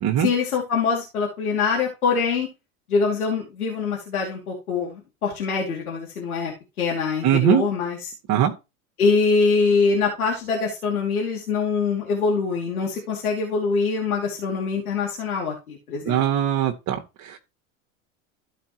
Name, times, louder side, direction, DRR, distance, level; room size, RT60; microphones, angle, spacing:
voice 1, 0.2-2.5 2.9-6.5 6.8-8.1 9.0-16.2, left 4 dB, 90° left, 2.8 m, -24 dB
voice 2, 7.2-7.6 8.3-8.5 16.0-17.4, right 10 dB, 45° right, 1.7 m, -21 dB
13.5 x 5.1 x 3.0 m
hypercardioid pair, 90°, 42 cm